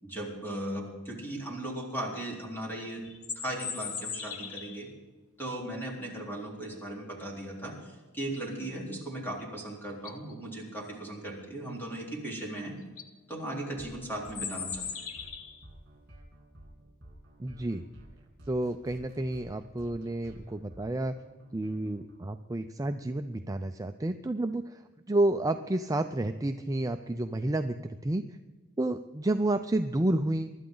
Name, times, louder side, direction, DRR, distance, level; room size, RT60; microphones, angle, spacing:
voice 1, 0.0-3.0 3.4-4.9 5.4-12.8 13.3-15.0, right 1 dB, 10° left, -2 dB, 3.9 m, -37 dB
sound 1, 3.0-4.9 9.4-9.5 9.9-10.3 12.4-12.5 12.8-13.1 14.2-15.6, left 6 dB, 70° left, 1.4 m, -38 dB
sound 2, 13.8-22.2, right 1 dB, 50° right, 3.1 m, -52 dB
voice 2, 17.4-17.8 18.5-21.1 21.5-24.8 25.1-28.4 28.8-30.5, right 1 dB, 15° right, 7 dB, 0.4 m, -30 dB
24.5 x 12.0 x 3.9 m, 1.2 s
head